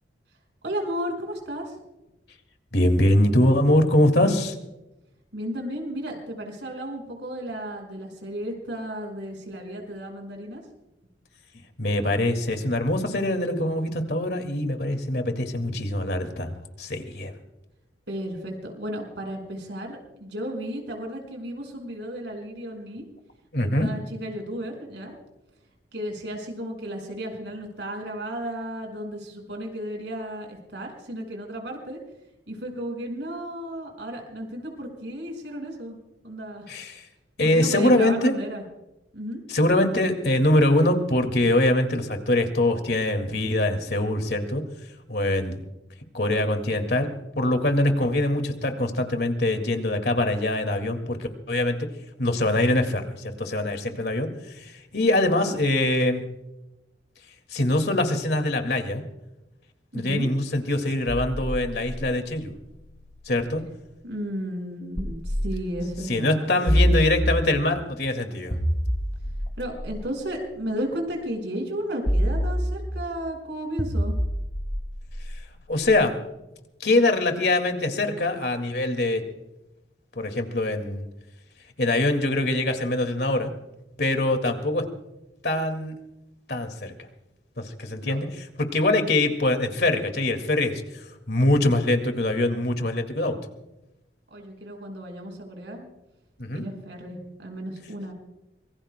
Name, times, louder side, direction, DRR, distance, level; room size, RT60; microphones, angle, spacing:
voice 1, 0.6-1.7 5.3-10.6 18.1-23.0 23.6-25.2 25.9-32.0 32.5-36.0 36.2-36.7 37.4-38.6 39.1-39.4 55.1-55.6 59.9-60.3 64.0-67.0 69.6-74.2 88.0-88.2 94.3-95.8 96.5-98.1, equal, 75° right, 2 dB, 5.4 m, -34 dB
voice 2, 2.7-4.5 11.8-17.3 23.5-23.9 36.7-37.0 37.4-38.4 39.5-44.6 45.1-45.6 46.1-51.8 52.2-56.2 57.5-59.0 59.9-62.5 63.3-63.6 66.1-68.6 75.7-76.2 76.8-79.2 80.2-81.0 81.8-83.5 84.0-84.9 85.4-86.0 86.5-86.9 87.6-88.3 88.6-93.4 96.4-96.6, left 1 dB, 60° left, 6 dB, 2.1 m, -23 dB
sound 1, 61.1-63.8 65.0-66.0 66.7-67.8 68.5-70.8 72.1-73.2 73.8-75.9, equal, 30° left, 2.6 m, -27 dB
25.5 x 23.0 x 2.2 m, 0.96 s
head